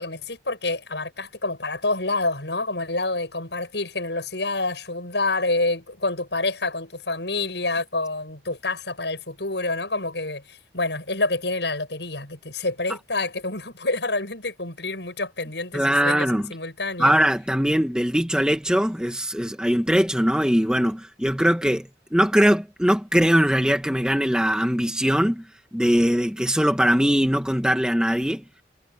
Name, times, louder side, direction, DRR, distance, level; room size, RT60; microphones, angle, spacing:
voice 1, 0.0-17.1, left 2 dB, 75° left, 7.9 m, -28 dB
voice 2, 15.7-16.5 17.0-25.4 25.7-28.4, equal, 5° right, 1.6 m, -21 dB
head